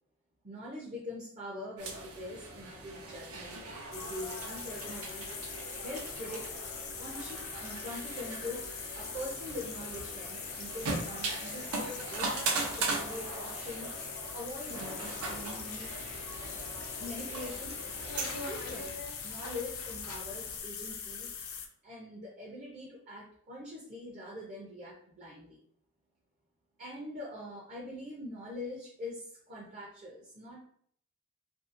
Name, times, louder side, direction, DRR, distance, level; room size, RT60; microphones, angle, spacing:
voice 1, 0.4-3.6 3.9-5.3 5.8-6.4 7.0-8.7 8.9-12.3 12.8-13.9 14.3-15.9 17.0-17.8 18.1-19.0 19.2-21.3 21.8-25.6 26.8-30.7, left 1 dB, 35° right, -4 dB, 0.5 m, -43 dB
sound 1, 1.8-18.9, right 3 dB, 85° right, 0.6 m, -39 dB
sound 2, 3.9-21.7, left 7 dB, 45° left, 0.3 m, -42 dB
sound 3, 15.0-20.6, left 2 dB, 90° left, 0.6 m, -46 dB
2.7 x 2.6 x 2.5 m, 0.63 s
head